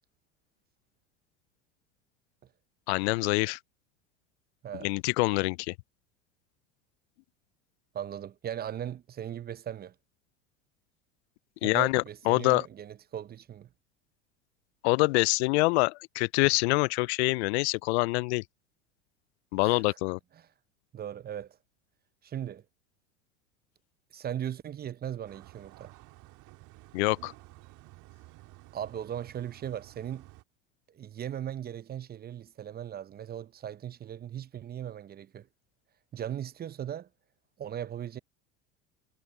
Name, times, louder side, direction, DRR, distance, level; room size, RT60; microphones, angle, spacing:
voice 1, 2.9-3.6 4.8-5.7 11.6-12.6 14.8-18.4 19.5-20.2 26.9-27.3, left 26 dB, 60° left, 0.5 m, -25 dB
voice 2, 7.9-9.9 11.6-13.7 19.6-20.0 20.4-20.5 20.9-21.6 22.2-22.6 24.1-25.9 28.7-30.3 30.9-35.5 36.1-37.1 37.6-38.2, right 10 dB, 25° right, 0.7 m, -38 dB
sound 1, 25.2-30.4, right 19 dB, 50° right, 2.6 m, -53 dB
hypercardioid pair, 80°, 37 cm